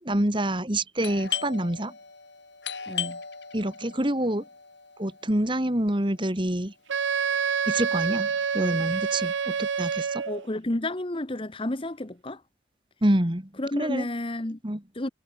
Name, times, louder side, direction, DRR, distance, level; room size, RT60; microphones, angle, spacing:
voice 1, 0.0-1.9 3.5-4.4 5.0-6.7 7.7-10.2 13.0-13.5 13.8-14.1 14.6-14.8, right 1 dB, 25° right, 2.0 m, -27 dB
Doorbell, 1.0-6.5, left 8 dB, 65° left, 7.6 m, -37 dB
voice 2, 2.9-3.2 10.2-12.4 13.6-14.6 14.9-15.1, left 1 dB, 25° left, 1.0 m, -31 dB
Wind instrument woodwind instrument, 6.9-10.5, right 6 dB, 75° right, 0.5 m, -27 dB
head